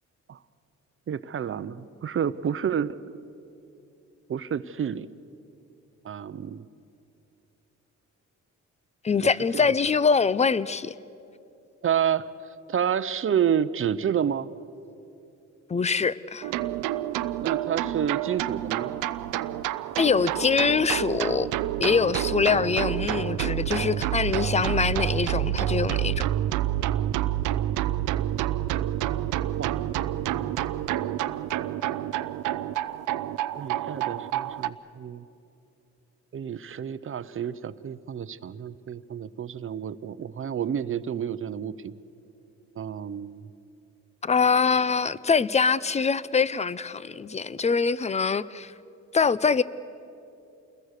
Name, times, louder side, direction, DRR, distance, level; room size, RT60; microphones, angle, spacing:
voice 1, 1.1-3.0 4.3-5.1 6.0-6.6 9.5-9.7 11.8-12.3 12.7-14.5 17.4-18.9 29.6-29.8 30.1-30.6 33.5-35.3 36.3-42.0 42.8-43.5, right 8 dB, 45° right, 0.8 m, -29 dB
voice 2, 9.0-10.9 15.7-16.5 20.0-21.5 21.8-26.3 44.2-48.7 49.1-49.6, left 5 dB, 20° left, 0.6 m, -24 dB
sound 1, 16.4-34.7, right 13 dB, 90° right, 0.7 m, -28 dB
28.5 x 21.5 x 6.7 m
cardioid pair, 90°, 30 cm